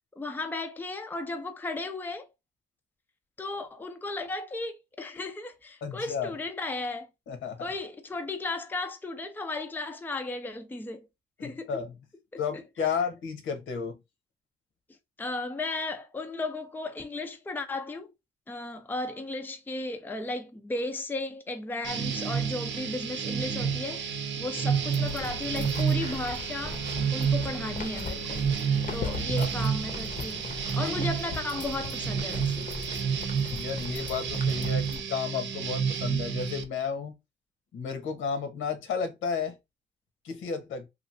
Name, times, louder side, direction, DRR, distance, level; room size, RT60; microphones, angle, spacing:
voice 1, 0.2-2.3 3.4-7.1 7.6-11.1 11.4-11.7 12.3-12.6 15.2-18.1 18.5-26.8 27.1-28.4 28.9-30.4 30.7-32.7, left 2 dB, 10° left, 0.5 m, -35 dB
voice 2, 5.8-6.3 7.3-7.7 11.4-11.9 12.4-14.0 29.4-29.5 30.8-31.0 33.5-37.1 37.7-39.5 40.2-40.9, left 6 dB, 80° left, 1.1 m, -32 dB
sound 1, 21.8-36.6, right 6 dB, 70° right, 0.7 m, -30 dB
sound 2, 24.8-35.0, left 4 dB, 45° left, 0.8 m, -39 dB
3.1 x 2.6 x 2.6 m
cardioid pair, 90°, 20 cm